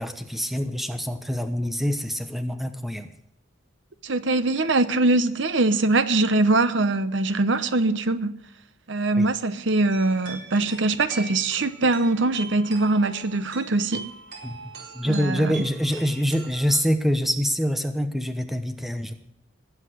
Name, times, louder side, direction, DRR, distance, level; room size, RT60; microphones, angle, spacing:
voice 1, 0.0-3.1 9.2-9.3 14.4-14.6 14.9-19.1, equal, ahead, 1.0 m, -25 dB
voice 2, 4.0-8.3 8.9-14.1 15.0-15.5, right 2 dB, 65° right, 0.9 m, -22 dB
sound 1, 9.9-16.8, right 3 dB, 85° right, 4.2 m, -41 dB
20.0 x 8.2 x 8.0 m
head